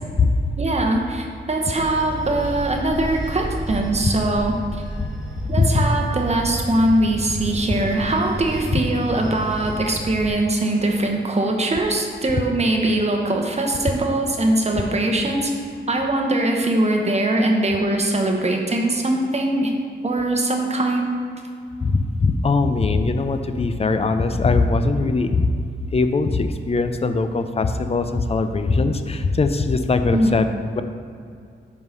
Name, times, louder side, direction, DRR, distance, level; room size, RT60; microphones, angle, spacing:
voice 1, 0.6-4.8 5.5-15.5 15.9-19.7 20.0-21.1 30.1-30.3, right 1 dB, 35° right, 2 dB, 1.0 m, -21 dB
Bell / Train, 1.8-10.3, right 1 dB, 5° right, 1.3 m, -31 dB
voice 2, 5.5-5.8 8.7-8.8 21.8-25.5 25.9-30.5 30.8-30.9, left 3 dB, 30° left, 9 dB, 0.5 m, -20 dB
5.4 x 4.7 x 5.5 m, 2.3 s
cardioid pair, 80°, 20 cm